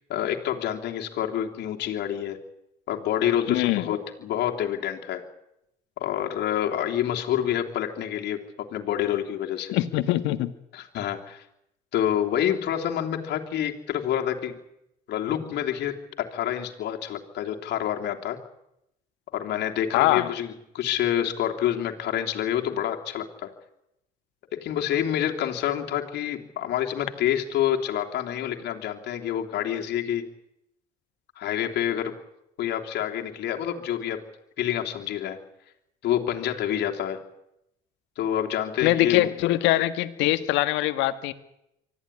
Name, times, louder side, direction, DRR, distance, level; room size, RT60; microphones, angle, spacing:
voice 1, 0.1-2.4 2.9-5.2 6.0-9.7 10.7-11.4 11.9-14.6 15.1-18.4 19.3-23.5 24.5-30.3 31.4-32.2 32.6-34.2 34.6-35.4 36.0-37.2 38.2-39.3, left 10 dB, 70° left, 2 dB, 3.2 m, -27 dB
voice 2, 3.5-3.9 9.7-10.5 19.9-20.3 38.8-41.3, left 16 dB, 85° left, 12 dB, 1.7 m, -23 dB
24.5 x 14.5 x 10.0 m, 0.83 s
cardioid pair, 95°, 18 cm